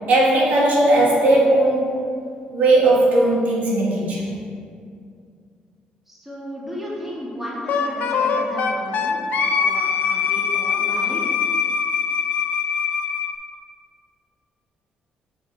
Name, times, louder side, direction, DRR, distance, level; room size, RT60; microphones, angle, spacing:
voice 1, 0.1-2.0 2.5-4.3, right 2 dB, 60° right, -5 dB, 1.7 m, -17 dB
voice 2, 6.1-9.3 9.6-11.3, equal, 10° right, -6 dB, 1.6 m, -34 dB
Wind instrument woodwind instrument, 7.7-13.3, left 6 dB, 70° left, 0.5 m, -22 dB
6.5 x 4.5 x 4.5 m, 2.3 s
cardioid pair, 105°, 3 cm